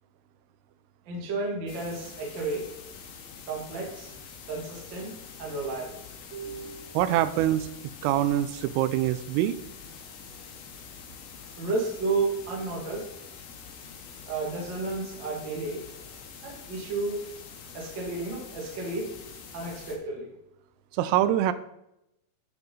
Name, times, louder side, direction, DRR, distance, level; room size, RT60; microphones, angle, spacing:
voice 1, 1.0-2.7 3.4-4.1 4.5-5.1 5.4-6.0 6.3-6.9 11.6-13.1 14.3-15.8 16.4-17.2 17.7-19.1 19.5-20.3, right 3 dB, 55° right, -2 dB, 1.2 m, -32 dB
sound 1, 1.7-20.0, left 6 dB, 70° left, 2.6 m, -45 dB
voice 2, 6.9-7.7 8.0-9.5 20.9-21.5, right 12 dB, 85° right, 13 dB, 3.2 m, -24 dB
9.5 x 7.3 x 4.0 m, 0.83 s
omnidirectional pair, 5.9 m